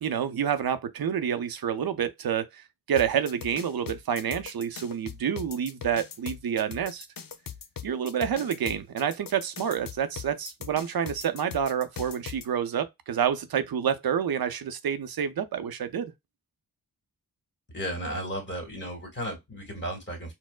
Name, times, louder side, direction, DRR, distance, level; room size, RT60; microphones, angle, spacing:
voice 1, 0.0-7.1 7.8-16.1, right 8 dB, 85° right, 0.5 m, -28 dB
sound 1, 3.0-12.5, left 8 dB, 70° left, 0.7 m, -40 dB
voice 2, 17.7-20.3, equal, 30° left, 1.8 m, -34 dB
4.2 x 2.0 x 2.3 m
wide cardioid pair, 90°, 36 cm